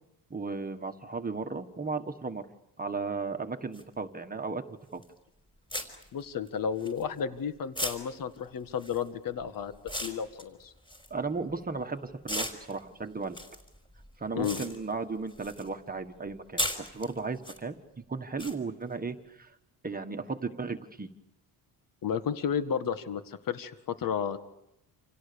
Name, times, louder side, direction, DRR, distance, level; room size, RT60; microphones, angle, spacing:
voice 1, 0.3-2.4 2.8-4.6 4.9-5.0 11.1-13.4 14.2-19.6 19.8-21.1, right 4 dB, 20° right, 6 dB, 1.5 m, -35 dB
sound 1, 3.7-3.8 5.0-5.2 5.7-7.4 7.7-11.8 12.2-15.7 16.0-17.6 18.4-18.5, left 1 dB, 10° left, 5.0 m, -37 dB
voice 2, 6.1-10.7 14.3-14.6 22.0-24.4, left 7 dB, 55° left, 10 dB, 1.8 m, -32 dB
29.5 x 28.0 x 7.0 m, 0.84 s
cardioid pair, 160°, 41 cm